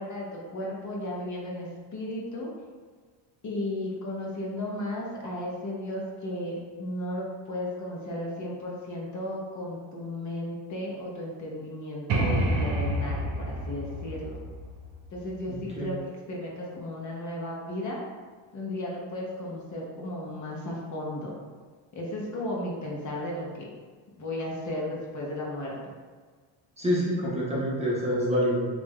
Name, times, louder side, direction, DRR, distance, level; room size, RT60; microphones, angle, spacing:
voice 1, 0.0-2.5 3.4-14.4 15.1-18.0 18.5-21.4 21.9-23.7 24.2-25.9, left 1 dB, 35° left, -3 dB, 0.7 m, -35 dB
sound 1, 12.1-15.8, right 1 dB, 85° right, 0.8 m, -29 dB
voice 2, 15.5-15.9 26.8-28.7, equal, 15° right, -7 dB, 0.6 m, -27 dB
3.2 x 2.5 x 3.5 m, 1.5 s
cardioid pair, 140°, 49 cm